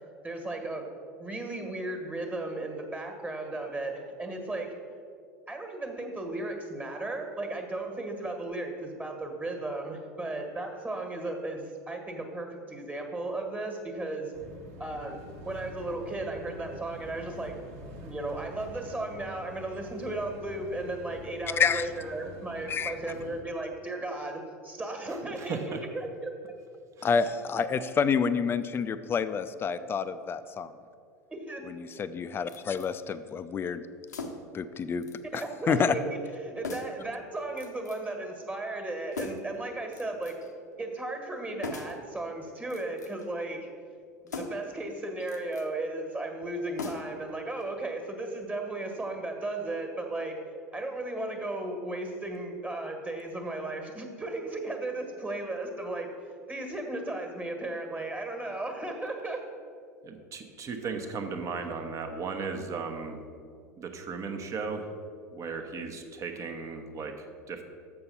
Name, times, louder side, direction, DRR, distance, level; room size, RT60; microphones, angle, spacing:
voice 1, 0.2-0.8 1.2-4.8 5.5-14.3 14.8-17.6 18.0-26.3 31.3-31.6 35.3-40.4 40.8-43.7 44.2-50.4 50.7-56.1 56.5-59.4, right 2 dB, 15° right, 4 dB, 1.6 m, -35 dB
sound 1, 14.3-23.4, equal, 65° right, 1.3 m, -46 dB
voice 2, 21.6-21.9 22.7-22.9 27.0-30.7 31.6-33.8 34.5-35.0 35.3-36.0, left 6 dB, 25° left, 12 dB, 0.4 m, -28 dB
voice 3, 25.4-25.8 27.0-27.1 60.0-63.2 63.8-64.9 65.3-67.6, right 4 dB, 35° right, 5 dB, 1.0 m, -36 dB
sound 2, 32.5-32.9 34.1-34.6 35.0-35.5 35.8-35.9 36.6-37.0 37.6-38.1 39.1-39.6 39.9-40.5 41.6-42.0 42.6-43.3 44.3-44.7 45.2-45.7 46.8-47.3 47.6-47.7, left 3 dB, 80° left, 0.8 m, -40 dB
6.8 x 6.7 x 5.8 m, 2.2 s
figure-of-eight pair, 80°, 9 cm